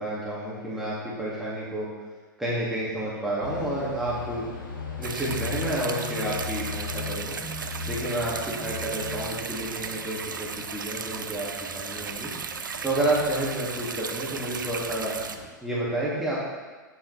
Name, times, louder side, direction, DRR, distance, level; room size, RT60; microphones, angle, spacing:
voice 1, 0.0-1.9 2.4-4.4 5.0-7.4 7.9-12.3 12.8-15.1 15.6-16.5, right 1 dB, 5° right, -8 dB, 2.0 m, -30 dB
sound 1, 3.4-15.5, left 4 dB, 80° left, 1.5 m, -39 dB
sound 2, 5.0-15.4, right 6 dB, 75° right, 0.6 m, -36 dB
8.4 x 7.9 x 3.3 m, 1.3 s
figure-of-eight pair, 100°, 11 cm